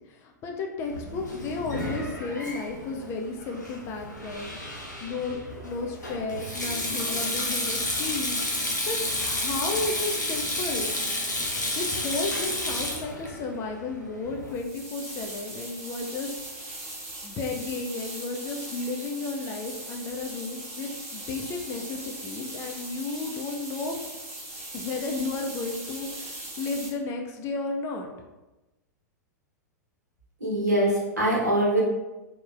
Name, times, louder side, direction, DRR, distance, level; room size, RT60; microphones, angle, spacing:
voice 1, 0.1-5.4 5.6-10.9 11.8-16.3 17.2-24.0 24.7-28.1, left 3 dB, 30° left, 2 dB, 0.4 m, -33 dB
Sink (filling or washing), 0.8-14.5, left 1 dB, 85° left, 0.5 m, -31 dB
sound 1, 14.4-26.9, right 1 dB, 30° right, 0.8 m, -40 dB
voice 2, 30.4-31.8, right 1 dB, 75° right, -4 dB, 1.0 m, -23 dB
3.1 x 2.1 x 2.4 m, 1.1 s
figure-of-eight pair, 95°, 9 cm